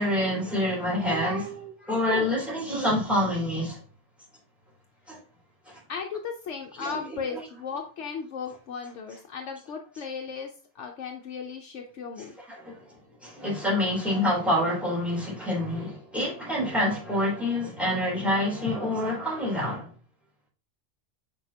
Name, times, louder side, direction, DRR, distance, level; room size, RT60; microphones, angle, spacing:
voice 1, 0.0-3.8 5.1-5.2 6.8-7.0 12.5-12.8 13.2-19.9, left 1 dB, ahead, 3.5 m, -27 dB
voice 2, 5.9-12.3, left 6 dB, 70° left, 1.1 m, -36 dB
7.4 x 6.2 x 2.9 m
omnidirectional pair, 1.2 m